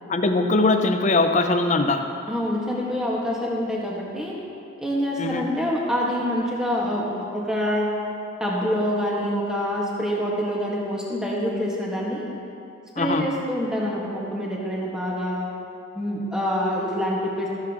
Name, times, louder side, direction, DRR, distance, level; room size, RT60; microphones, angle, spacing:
voice 1, 0.1-2.1 5.2-5.4 13.0-13.3, left 3 dB, 35° left, 6 dB, 0.6 m, -21 dB
voice 2, 2.3-4.3 4.8-7.9 8.4-12.3 13.0-15.5 15.9-17.5, equal, 5° right, -5 dB, 1.7 m, -26 dB
14.0 x 12.0 x 3.0 m, 2.6 s
head